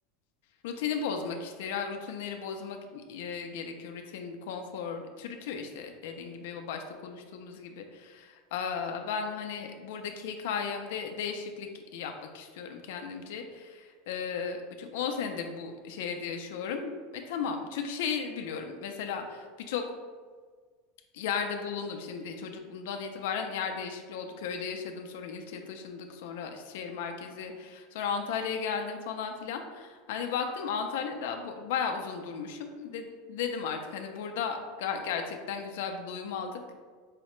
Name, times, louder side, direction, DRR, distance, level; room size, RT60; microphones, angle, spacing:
voice 1, 0.6-19.8 21.1-36.8, left 6 dB, 75° left, 5 dB, 0.4 m, -35 dB
4.7 x 2.1 x 3.0 m, 1.5 s
supercardioid pair, 165°, 0 cm